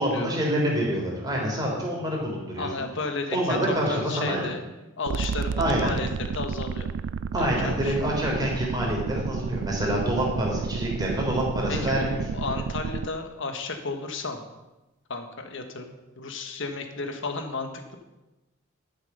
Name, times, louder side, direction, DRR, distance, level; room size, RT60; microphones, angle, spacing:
voice 1, 0.0-2.7 3.3-4.5 5.6-5.9 7.3-12.4, equal, 20° right, -3 dB, 3.4 m, -26 dB
voice 2, 2.6-4.6 5.0-6.1 6.3-6.9 7.4-8.0 11.7-14.4 15.1-18.0, left 3 dB, 65° left, 6 dB, 1.4 m, -33 dB
sound 1, 5.1-13.1, right 5 dB, 60° right, 0.3 m, -31 dB
11.5 x 7.0 x 5.5 m, 1.0 s
head